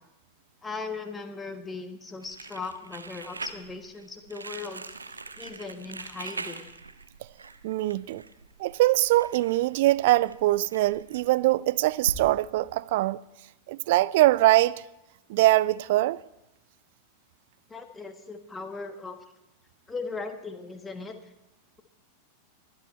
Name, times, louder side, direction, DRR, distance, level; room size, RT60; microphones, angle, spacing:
voice 1, 0.6-4.8 5.4-6.6 17.7-19.2 19.9-21.2, left 4 dB, 15° left, 1.3 m, -38 dB
Crumpling crinkling, 2.2-12.2, right 3 dB, 80° right, 0.8 m, -42 dB
voice 2, 7.6-8.2 8.6-13.2 13.7-14.8 15.3-16.2, right 17 dB, 50° right, 0.4 m, -23 dB
23.0 x 8.7 x 4.4 m
figure-of-eight pair, 90°, 0 cm